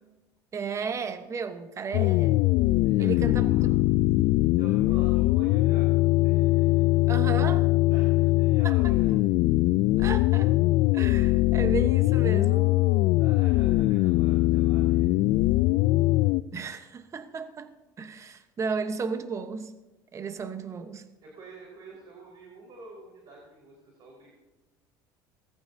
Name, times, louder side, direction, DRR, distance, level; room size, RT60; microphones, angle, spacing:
voice 1, 0.5-2.5 3.0-3.5 7.1-7.7 8.6-8.8 10.0-10.5 10.9-12.7 16.5-19.7 20.1-21.0, right 5 dB, 30° right, 9 dB, 1.1 m, -34 dB
sound 1, 1.9-16.4, left 18 dB, 65° left, 0.4 m, -22 dB
voice 2, 2.8-3.7 4.6-6.9 7.9-9.1 13.2-15.1 21.2-24.3, right 2 dB, 50° right, -2 dB, 4.8 m, -48 dB
20.5 x 14.5 x 2.8 m, 1.1 s
supercardioid pair, 95°, 10 cm